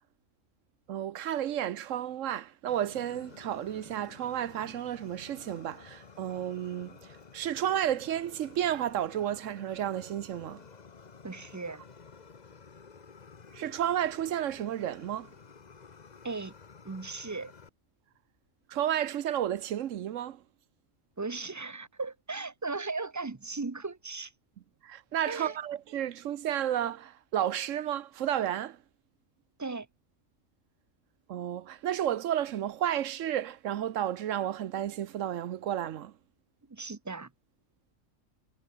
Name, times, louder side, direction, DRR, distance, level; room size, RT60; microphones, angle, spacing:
voice 1, 0.9-10.6 13.5-15.3 18.7-20.4 24.8-28.8 31.3-36.1, right 11 dB, 75° right, 1.1 m, -32 dB
Fire, 2.7-17.7, left 5 dB, 35° left, 1.0 m, -52 dB
voice 2, 11.2-11.8 16.2-16.5 16.8-17.5 21.2-24.3 25.3-25.6 29.6-29.9 36.7-37.3, right 3 dB, 20° right, 0.5 m, -37 dB
omnidirectional pair, 1.3 m